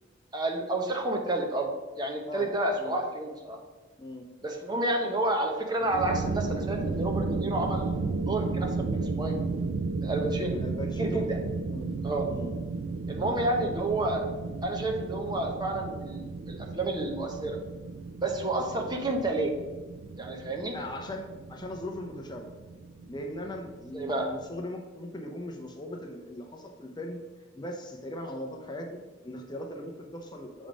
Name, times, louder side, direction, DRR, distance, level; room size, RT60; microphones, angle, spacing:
voice 1, 0.3-1.7 2.0-3.6 4.4-9.3 10.0-10.5 11.0-11.4 12.0-12.3 13.1-14.3 14.6-17.6 18.2-19.5 20.2-20.8 23.9-24.3, right 2 dB, 20° right, 2 dB, 0.8 m, -30 dB
sound 1, 5.8-24.6, right 3 dB, 70° right, 0.3 m, -34 dB
voice 2, 10.5-11.3 11.7-11.9 12.2-12.5 13.1-13.3 20.7-22.5 23.1-27.2 27.5-30.7, left 1 dB, 20° left, 2 dB, 0.6 m, -39 dB
7.3 x 3.6 x 5.0 m, 1.2 s
head